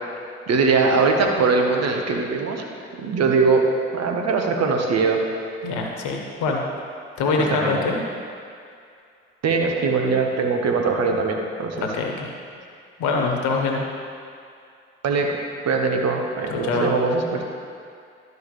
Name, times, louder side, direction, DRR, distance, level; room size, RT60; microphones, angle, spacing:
voice 1, 0.5-2.7 3.0-3.6 3.9-5.2 7.4-7.9 9.4-11.9 15.0-15.4 15.6-17.4, right 4 dB, 55° right, 2 dB, 1.2 m, -21 dB
voice 2, 5.6-6.6 7.2-8.0 11.8-12.3 13.0-13.8 16.5-16.9, left 4 dB, 75° left, 1 dB, 1.2 m, -24 dB
12.5 x 4.8 x 3.3 m, 2.4 s
hypercardioid pair, 50°, 30 cm